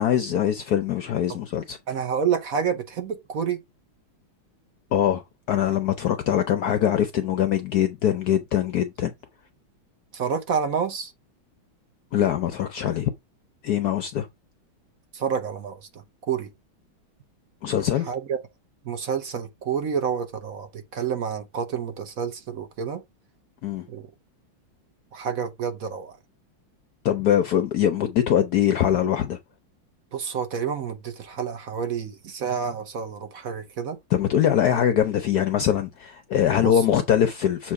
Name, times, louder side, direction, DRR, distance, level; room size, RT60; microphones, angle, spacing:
voice 1, 0.0-1.8 4.9-9.1 12.1-13.1 13.6-14.3 17.6-18.1 23.6-23.9 27.0-29.4 34.1-37.7, left 10 dB, 70° left, 0.9 m, -22 dB
voice 2, 1.9-3.6 10.1-11.1 15.1-15.8 16.3-16.5 18.1-18.4 18.9-23.0 23.9-24.1 25.1-26.1 30.1-34.0 36.6-36.7, right 7 dB, 50° right, 1.2 m, -28 dB
7.3 x 3.0 x 4.7 m
omnidirectional pair, 2.2 m